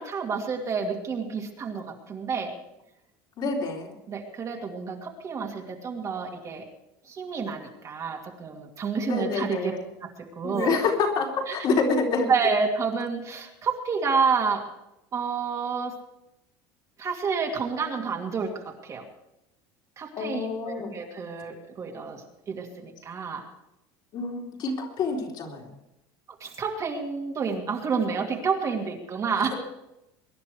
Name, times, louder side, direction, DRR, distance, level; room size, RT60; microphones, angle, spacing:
voice 1, 0.0-2.5 4.1-6.6 7.0-9.7 10.0-10.1 10.4-10.8 11.5-11.6 12.3-14.7 15.1-16.0 17.0-19.0 20.0-23.4 26.4-29.6, right 5 dB, 30° right, 1 dB, 2.5 m, -29 dB
voice 2, 3.4-3.9 9.0-9.7 10.4-12.3 20.2-21.0 24.1-25.7, left 4 dB, 45° left, -1 dB, 4.1 m, -27 dB
23.0 x 10.5 x 4.8 m, 0.88 s
supercardioid pair, 130°, 10 cm